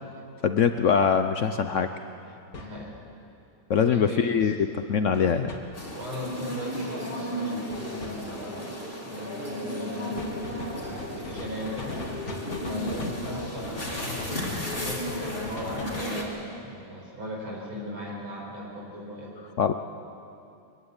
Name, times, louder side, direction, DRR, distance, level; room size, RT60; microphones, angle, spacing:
voice 1, 0.4-1.9 3.7-4.6 4.9-5.5 19.6-19.7, left 7 dB, 80° left, 8 dB, 0.6 m, -22 dB
sound 1, 1.0-1.1 2.5-2.8 5.1-5.6 7.7-8.1 10.2-16.1, left 2 dB, 45° left, 2.4 m, -39 dB
voice 2, 2.6-2.9 3.8-4.5 6.0-19.3, left 1 dB, 90° right, -3 dB, 5.7 m, -38 dB
sound 2, 5.7-16.2, equal, 25° left, 3.1 m, -34 dB
23.0 x 15.5 x 9.7 m, 2.5 s
omnidirectional pair, 2.2 m